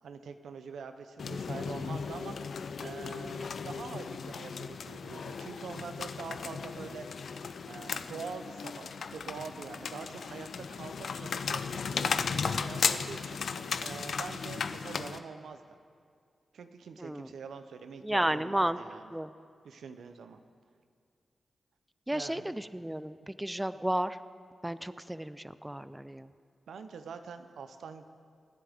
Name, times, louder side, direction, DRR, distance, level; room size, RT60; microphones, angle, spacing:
voice 1, 0.0-2.4 2.8-7.1 7.7-11.6 11.9-13.4 13.8-15.6 16.5-19.1 19.6-20.4 22.1-22.5 26.7-28.1, right 5 dB, 85° right, 8 dB, 0.7 m, -44 dB
sound 1, 1.2-15.2, left 5 dB, 75° left, 0.5 m, -36 dB
voice 2, 17.0-17.3 18.0-18.8 19.1-19.3 22.1-24.2 24.6-26.3, right 1 dB, 10° right, 14 dB, 0.5 m, -32 dB
24.5 x 10.0 x 3.5 m, 2.2 s
cardioid pair, 45°, 0 cm